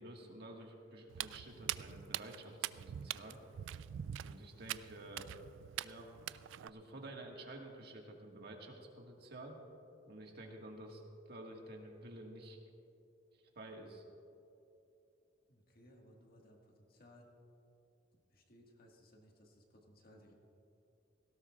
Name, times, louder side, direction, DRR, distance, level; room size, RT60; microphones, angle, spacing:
voice 1, 0.0-3.4 4.2-5.3 5.8-6.1 6.6-9.6 10.1-12.6 13.6-14.0, right 1 dB, 60° right, 1 dB, 1.7 m, -51 dB
Walk footsteps, 1.1-6.7, right 11 dB, 80° right, 0.3 m, -44 dB
voice 2, 15.5-17.3 18.3-20.3, equal, 55° left, 0 dB, 1.9 m, -62 dB
18.5 x 16.5 x 2.5 m, 2.8 s
head